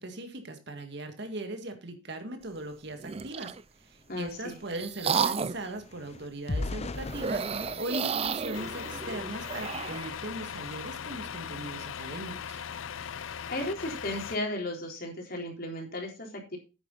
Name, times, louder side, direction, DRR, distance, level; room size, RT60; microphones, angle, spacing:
voice 1, 0.0-12.6, right 1 dB, 60° right, 6 dB, 1.9 m, -39 dB
sound 1, 3.0-3.6 4.3-5.7 7.1-10.1, right 6 dB, 30° right, 0.4 m, -32 dB
sound 2, 3.5-3.6 3.9-9.4 9.9-10.1 10.5-10.7, left 2 dB, 35° left, 0.6 m, -40 dB
voice 2, 4.1-4.5 13.5-16.6, left 1 dB, 50° left, 1 dB, 3.7 m, -35 dB
Truck, 8.5-14.4, left 8 dB, 85° left, 0.5 m, -39 dB
9.6 x 9.2 x 3.9 m, 0.30 s
head